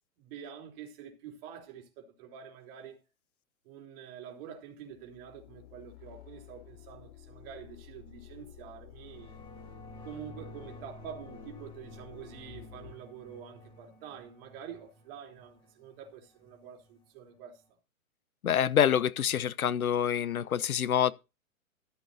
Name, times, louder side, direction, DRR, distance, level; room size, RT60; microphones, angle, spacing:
voice 1, 0.2-3.0 3.6-9.4 10.0-17.6, right 8 dB, 40° right, 3.6 m, -47 dB
sound 1, 4.9-12.9, left 12 dB, 45° left, 2.6 m, -52 dB
sound 2, 9.0-17.7, equal, 10° left, 4.7 m, -52 dB
voice 2, 18.4-21.1, left 9 dB, 80° left, 0.8 m, -26 dB
14.0 x 6.8 x 4.2 m
hypercardioid pair, 125°, 43 cm